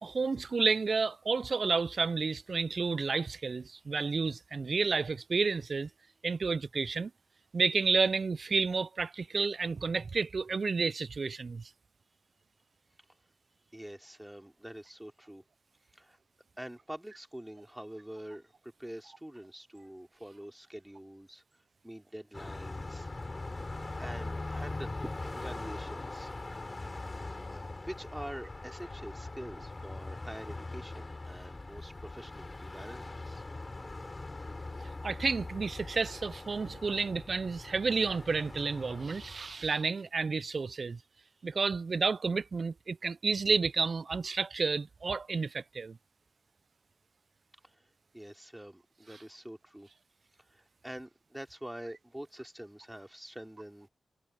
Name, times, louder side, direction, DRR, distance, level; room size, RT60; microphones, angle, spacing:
voice 1, 0.0-5.9 6.2-7.1 7.5-11.6 35.0-41.0 41.4-46.0, right 4 dB, 60° right, 0.4 m, -31 dB
voice 2, 13.7-15.4 15.9-16.2 16.6-18.5 18.8-21.4 21.8-23.1 24.0-26.3 27.5-33.4 47.6-47.8 48.1-49.9 50.5-53.9, right 1 dB, 10° right, 3.5 m, -46 dB
Car passing by, 22.3-39.5, left 2 dB, 35° left, 4.7 m, -41 dB
cardioid pair, 50°, 0 cm